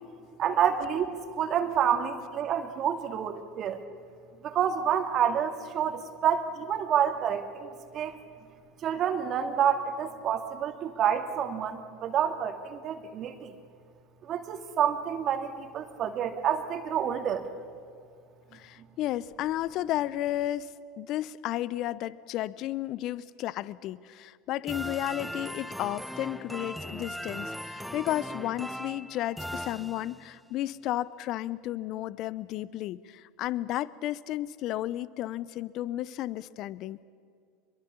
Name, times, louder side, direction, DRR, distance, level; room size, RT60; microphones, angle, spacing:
voice 1, 0.4-3.8 4.4-8.2 8.8-13.5 14.2-17.5, right 8 dB, 45° right, 6 dB, 2.3 m, -28 dB
voice 2, 18.5-37.0, left 14 dB, 50° left, 19 dB, 0.7 m, -33 dB
sound 1, 24.7-30.4, equal, ahead, 0.9 m, -39 dB
25.0 x 22.5 x 7.2 m, 2.2 s
hypercardioid pair, 85°, 0 cm